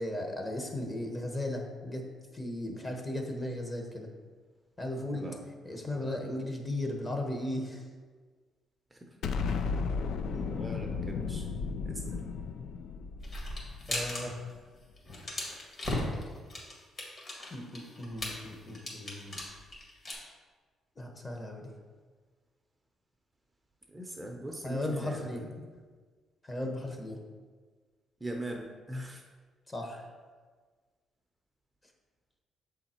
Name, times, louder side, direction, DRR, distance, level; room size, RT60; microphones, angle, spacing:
voice 1, 0.0-2.0 2.3-4.1 4.8-5.3 5.6-7.8 13.9-14.4 17.5-19.4 21.0-21.7 24.6-25.4 26.4-27.2 29.7-30.1, left 1 dB, 25° left, 2 dB, 1.1 m, -36 dB
voice 2, 5.7-6.0 8.9-9.1 10.5-11.5 11.8-12.2 23.9-25.3 28.2-29.2, right 1 dB, 15° right, 1 dB, 0.7 m, -41 dB
Explosion, 9.2-14.4, left 5 dB, 70° left, 0.4 m, -34 dB
sound 1, 13.2-14.2 14.5-14.7 15.0-20.1, left 1 dB, 40° left, 2.0 m, -37 dB
7.0 x 3.8 x 4.3 m, 1.5 s
cardioid pair, 90°, 0 cm